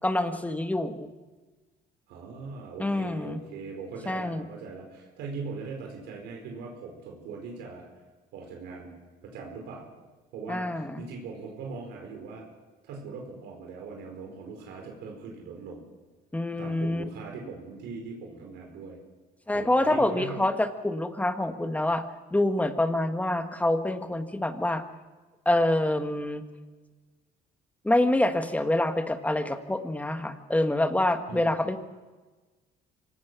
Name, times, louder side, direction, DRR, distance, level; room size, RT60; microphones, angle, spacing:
voice 1, 0.0-1.1 2.8-3.4 4.1-4.5 10.5-11.0 16.3-17.0 19.5-22.0 22.3-24.8 25.4-26.4 27.8-31.8, left 1 dB, 10° left, 8 dB, 1.6 m, -26 dB
voice 2, 2.1-7.9 8.3-8.9 9.2-9.9 10.3-12.4 12.8-15.8 16.6-19.0 19.5-20.4 31.3-31.5, right 4 dB, 85° right, 1 dB, 4.8 m, -40 dB
25.0 x 18.5 x 6.2 m, 1.3 s
cardioid pair, 110°, 17 cm